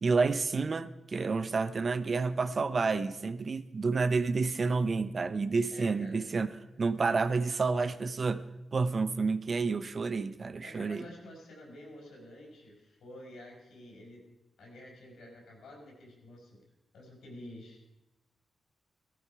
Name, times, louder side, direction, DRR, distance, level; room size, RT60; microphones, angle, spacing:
voice 1, 0.0-6.5 6.8-8.4 8.7-11.0, right 4 dB, 50° right, 14 dB, 0.7 m, -29 dB
voice 2, 5.7-6.2 6.7-6.8 10.6-14.2 14.6-16.6 16.9-17.8, left 1 dB, 90° left, 0 dB, 5.2 m, -49 dB
15.5 x 13.5 x 4.8 m, 0.94 s
cardioid pair, 75°, 0 cm